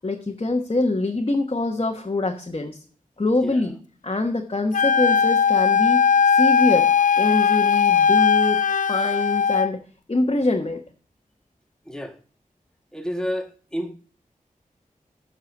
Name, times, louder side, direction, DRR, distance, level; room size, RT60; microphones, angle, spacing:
voice 1, 0.0-2.8 3.2-3.8 4.0-6.9 7.2-9.8 10.1-10.8, left 2 dB, 40° left, 1.2 m, -24 dB
Wind instrument woodwind instrument, 4.7-9.7, left 6 dB, 65° left, 0.4 m, -18 dB
voice 2, 11.9-12.2 12.9-13.9, equal, 5° left, 1.7 m, -30 dB
8.8 x 5.9 x 5.9 m
wide cardioid pair, 50°, 15 cm